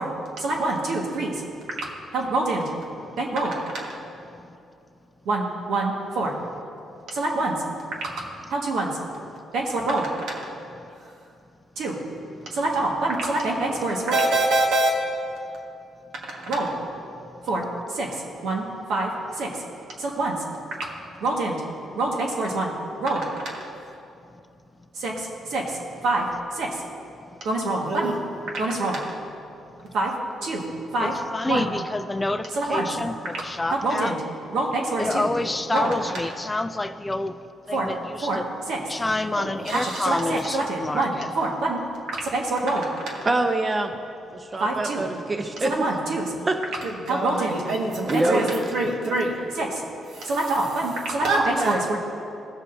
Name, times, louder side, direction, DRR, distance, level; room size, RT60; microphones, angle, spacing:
voice 1, 0.4-1.4 2.1-2.7 3.2-4.0 5.3-6.3 7.1-7.6 8.5-9.0 9.5-10.5 11.8-12.0 12.5-14.9 16.3-16.8 17.5-19.6 20.0-20.4 21.2-21.6 22.0-22.7 23.0-23.7 25.0-25.8 26.0-26.3 26.5-26.8 27.4-28.2 28.5-29.2 29.9-30.1 30.4-30.6 30.9-31.1 31.5-31.7 32.6-32.9 33.8-34.2 34.5-35.3 35.7-35.9 37.7-37.9 38.2-38.4 38.7-38.8 39.4-41.8 42.2-43.3 44.6-45.1 45.6-46.3 46.8-49.8 50.1-52.0, right 2 dB, 75° right, -1 dB, 1.6 m, -25 dB
voice 2, 31.0-34.2 35.0-37.3 37.7-38.5 38.9-41.3, left 2 dB, 20° left, 10 dB, 0.4 m, -28 dB
voice 3, 43.2-43.9 44.3-45.8 46.5-46.6 48.1-48.4, right 2 dB, 30° right, 5 dB, 0.7 m, -24 dB
17.5 x 6.4 x 2.7 m, 2.6 s
cardioid pair, 90°, 0 cm